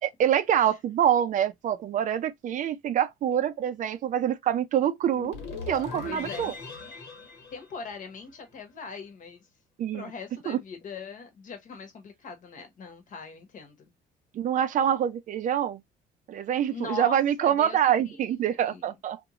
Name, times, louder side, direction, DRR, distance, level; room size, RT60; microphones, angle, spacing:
voice 1, 0.0-5.4 5.6-6.5 9.8-10.1 10.5-10.6 14.3-15.8 16.3-19.2, right 10 dB, 50° right, 0.4 m, -25 dB
sound 1, 5.1-8.4, left 4 dB, 80° left, 1.4 m, -40 dB
voice 2, 6.0-6.5 7.5-9.5 9.9-13.8 16.7-18.8, left 5 dB, 50° left, 1.1 m, -41 dB
2.5 x 2.4 x 2.8 m
cardioid pair, 110°, 17 cm